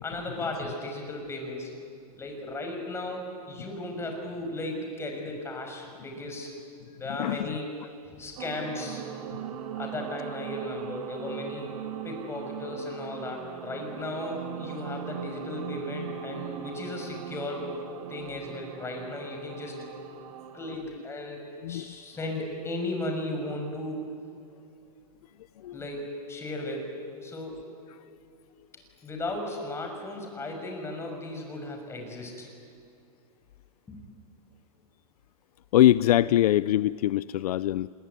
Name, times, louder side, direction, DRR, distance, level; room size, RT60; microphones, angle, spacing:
voice 1, 0.0-1.7 2.2-6.5 7.0-7.7 8.1-9.0 9.8-11.8 12.0-17.7 18.1-19.8 20.5-24.1 25.7-26.9 27.2-27.7 29.0-32.5 33.9-34.1, left 1 dB, 15° left, 3 dB, 6.0 m, -35 dB
voice 2, 7.2-7.6 21.6-22.0 25.6-25.8 35.7-37.9, left 13 dB, 70° left, 18 dB, 0.6 m, -23 dB
sound 1, 8.4-20.8, right 9 dB, 65° right, 2.2 m, -40 dB
27.0 x 22.0 x 9.8 m, 2.4 s
supercardioid pair, 145°, 20 cm